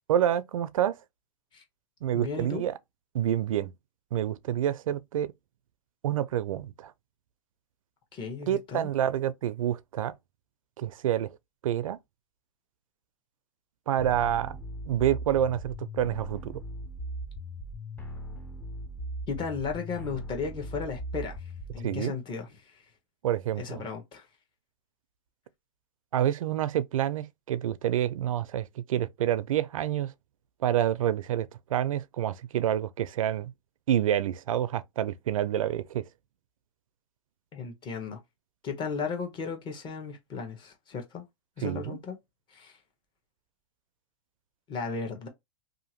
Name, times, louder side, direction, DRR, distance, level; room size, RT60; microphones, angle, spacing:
voice 1, 0.1-1.0 2.0-2.7 3.1-3.7 4.1-5.3 6.0-6.9 8.5-10.1 10.8-11.4 11.6-12.0 13.9-14.6 14.9-16.6 21.8-22.1 23.2-23.8 26.1-30.1 30.6-33.5 33.9-36.0 41.6-42.0, right 11 dB, 90° right, 0.4 m, -28 dB
voice 2, 2.1-2.6 8.1-8.9 19.3-22.8 23.6-24.3 37.5-38.2 38.6-41.2 41.6-42.2 42.5-42.8 44.7-45.3, left 5 dB, 30° left, 1.1 m, -35 dB
sound 1, 14.0-22.0, equal, 10° left, 0.6 m, -39 dB
2.8 x 2.5 x 2.9 m
hypercardioid pair, 130°, 17 cm